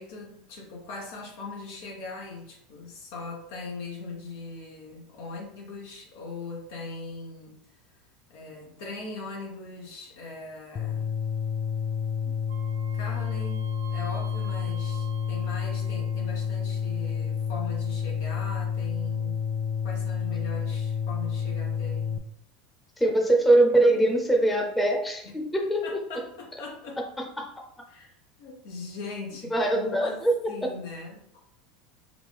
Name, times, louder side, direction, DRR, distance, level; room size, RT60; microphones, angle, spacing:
voice 1, 0.0-8.0 8.3-11.1 12.9-13.6 13.9-19.4 19.8-22.2 25.2-25.3 25.8-27.0 27.9-30.2 30.5-31.4, left 3 dB, 75° left, -1 dB, 0.9 m, -40 dB
sound 1, 10.8-22.2, left 7 dB, 35° left, 0.3 m, -29 dB
Wind instrument woodwind instrument, 12.5-16.4, right 9 dB, 85° right, 0.4 m, -48 dB
voice 2, 23.0-26.0 27.2-27.7 29.5-30.5, right 1 dB, 10° left, 1 dB, 0.8 m, -23 dB
3.6 x 2.4 x 3.4 m, 0.71 s
hypercardioid pair, 95°, 0 cm